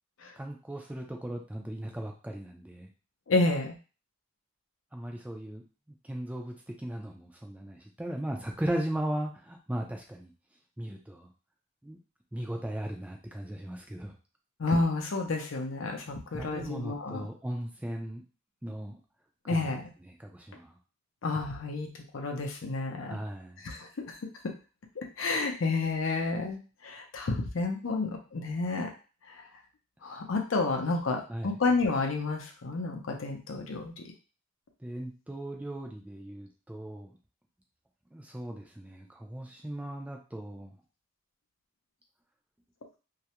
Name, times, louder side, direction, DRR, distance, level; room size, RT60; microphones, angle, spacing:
voice 1, 0.3-2.9 4.9-5.6 6.0-10.3 10.8-11.3 11.8-12.0 12.3-14.2 16.3-18.2 18.6-19.0 19.4-19.7 20.0-20.7 23.0-23.6 31.3-31.6 34.8-37.2 38.1-40.7, right 1 dB, 5° right, 2 dB, 0.3 m, -37 dB
voice 2, 3.3-3.8 14.6-17.3 19.5-19.9 21.2-21.9 22.1-23.2 23.6-24.2 25.0-26.6 26.8-28.9 29.3-29.4 30.0-33.9, left 3 dB, 70° left, 3 dB, 0.5 m, -30 dB
2.3 x 2.1 x 2.8 m, 0.35 s
head